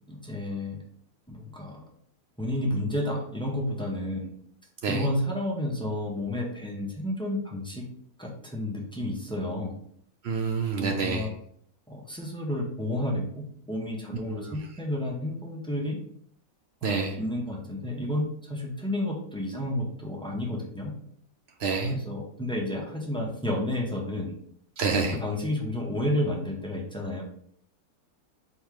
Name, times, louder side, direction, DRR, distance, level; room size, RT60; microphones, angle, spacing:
voice 1, 0.1-0.8 1.3-1.8 2.4-4.3 4.9-7.8 8.2-9.8 10.8-11.3 11.9-13.3 13.7-16.0 16.8-20.9 21.9-24.4 25.2-27.2, left 1 dB, 5° left, -2 dB, 0.5 m, -31 dB
voice 2, 10.2-11.3 14.3-14.5 16.8-17.2 21.6-22.0 24.8-25.2, right 4 dB, 65° right, 3 dB, 0.6 m, -27 dB
4.2 x 3.1 x 3.5 m, 0.66 s
omnidirectional pair, 1.5 m